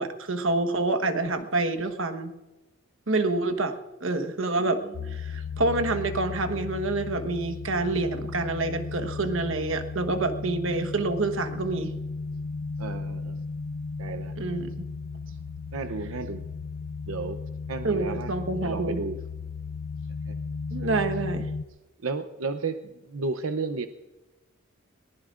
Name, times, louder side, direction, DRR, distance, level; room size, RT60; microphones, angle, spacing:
voice 1, 0.0-2.3 3.1-4.8 5.1-11.9 14.4-14.7 17.8-19.0 20.7-21.5, right 2 dB, 70° right, 7 dB, 1.3 m, -27 dB
voice 2, 4.6-4.9 12.8-13.4 14.0-14.3 15.7-16.4 17.1-17.4 17.7-18.3 18.6-19.2 20.3-20.4 22.0-22.8 23.1-23.9, right 4 dB, 90° right, 8 dB, 0.7 m, -32 dB
sound 1, 4.9-21.6, left 4 dB, 75° left, 0.4 m, -35 dB
22.0 x 19.0 x 2.5 m, 1.1 s
head